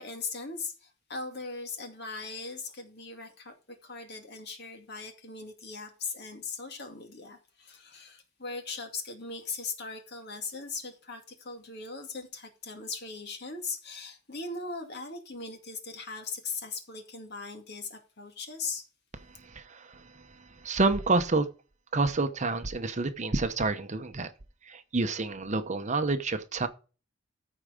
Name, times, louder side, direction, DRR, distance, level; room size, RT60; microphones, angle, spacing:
voice 1, 0.0-18.8, left 4 dB, 55° left, 2.2 m, -39 dB
voice 2, 19.3-21.5 21.9-24.3 24.6-26.7, right 3 dB, 35° right, 0.8 m, -29 dB
14.0 x 4.8 x 5.0 m
head